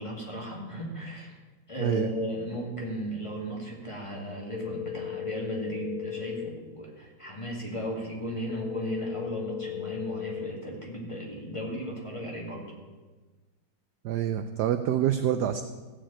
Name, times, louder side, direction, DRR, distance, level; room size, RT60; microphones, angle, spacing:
voice 1, 0.0-1.3 1.7-12.7, equal, 15° left, -3 dB, 2.2 m, -35 dB
sound 1, 4.5-6.5 8.5-10.5, left 10 dB, 50° left, 0.5 m, -36 dB
voice 2, 14.0-15.6, right 10 dB, 75° right, 9 dB, 1.0 m, -26 dB
15.0 x 5.1 x 8.7 m, 1.3 s
omnidirectional pair, 2.3 m